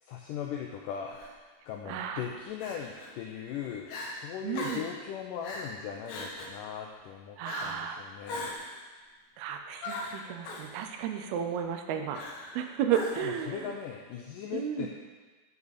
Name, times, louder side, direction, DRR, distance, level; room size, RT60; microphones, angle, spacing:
voice 1, 0.0-1.2 1.7-8.5 13.2-14.9, left 8 dB, 90° left, 1 dB, 1.9 m, -39 dB
Crying sobbing, 1.1-1.3 2.6-3.1 3.5-3.6 3.9-4.1 4.5-4.9 5.4-5.7 6.1-6.6 7.4-7.8 8.3-8.8 9.8-10.7 12.1-12.6 12.9-13.4, left 2 dB, 70° left, 2.0 m, -39 dB
voice 2, 1.9-2.2 4.4-4.8 7.4-8.0 9.4-12.2 12.5-13.7 14.5-14.9, right 8 dB, 85° right, 5 dB, 2.6 m, -33 dB
9.4 x 7.0 x 4.1 m, 1.3 s
omnidirectional pair, 4.5 m